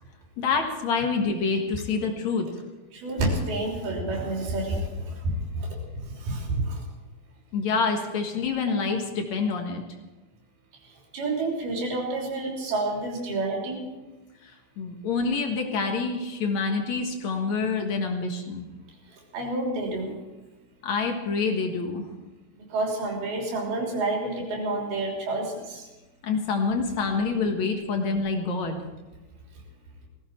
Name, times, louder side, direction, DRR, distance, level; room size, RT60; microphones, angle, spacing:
voice 1, 0.4-2.5 7.5-9.8 14.4-14.5 14.8-18.7 20.8-22.1 26.2-28.9, left 4 dB, 55° left, 3 dB, 2.5 m, -27 dB
voice 2, 2.9-6.8 10.8-13.9 19.1-20.1 22.6-25.9, right 2 dB, 90° right, -1 dB, 5.3 m, -29 dB
18.5 x 15.5 x 4.6 m, 1.1 s
omnidirectional pair, 4.3 m